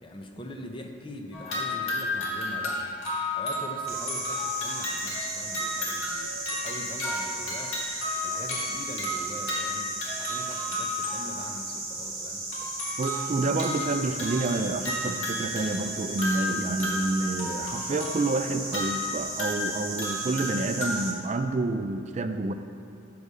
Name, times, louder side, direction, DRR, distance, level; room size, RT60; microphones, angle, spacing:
voice 1, 0.0-2.9 3.3-7.7 8.2-9.9 10.2-12.4, left 1 dB, 25° left, 3 dB, 0.5 m, -42 dB
sound 1, 1.3-11.5 12.5-21.0, left 1 dB, 85° left, 1.4 m, -33 dB
sound 2, 3.9-21.1, right 2 dB, 15° right, 0.9 m, -36 dB
voice 2, 13.0-22.5, right 3 dB, 35° right, 8 dB, 0.3 m, -28 dB
6.6 x 4.8 x 5.4 m, 2.5 s
head